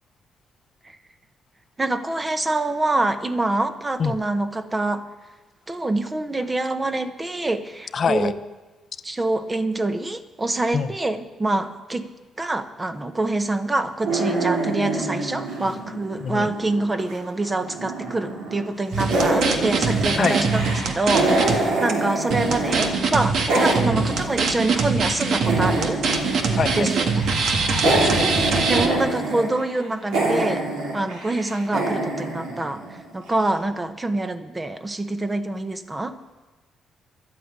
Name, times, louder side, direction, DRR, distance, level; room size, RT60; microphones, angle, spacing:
voice 1, 1.8-5.0 5.7-8.3 9.0-12.1 12.4-26.0 26.7-27.2 28.7-30.7 30.9-32.8 33.1-36.2, right 2 dB, 20° right, 9 dB, 1.1 m, -25 dB
voice 2, 7.9-8.3 10.7-10.9 16.2-16.5 20.1-20.4 26.6-26.9 27.8-28.3, left 6 dB, 50° left, 9 dB, 0.7 m, -24 dB
sound 1, 14.0-17.1 17.4-18.7 18.9-22.9 23.2-33.2, right 2 dB, 90° right, 3.3 m, -26 dB
sound 2, 18.9-21.6 21.9-22.0 22.3-28.9, right 4 dB, 70° right, 1.7 m, -23 dB
12.0 x 9.2 x 8.9 m, 1.2 s
cardioid pair, 90°, 0 cm